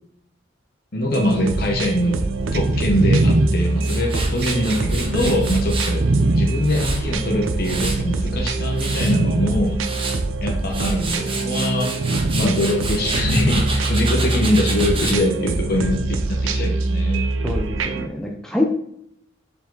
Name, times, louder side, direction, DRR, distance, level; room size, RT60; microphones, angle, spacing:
voice 1, 0.9-2.2 2.5-6.0 6.4-9.8 10.4-11.9 12.3-17.3, left 1 dB, 50° left, 0 dB, 1.0 m, -22 dB
sound 1, 1.1-18.1, right 2 dB, 90° right, 0.7 m, -24 dB
sound 2, 2.5-6.5 7.4-8.1 8.5-8.7 9.0-9.5 10.6-10.7 12.0-12.5 13.6-13.7, right 2 dB, 50° right, 0.5 m, -22 dB
Tools, 3.8-6.0 6.4-8.1 8.5-9.1 9.6-10.2 10.6-15.2, right 3 dB, 30° right, 1.3 m, -30 dB
voice 2, 17.4-18.6, left 2 dB, 5° left, 0 dB, 0.6 m, -25 dB
7.0 x 4.8 x 4.0 m, 0.72 s
head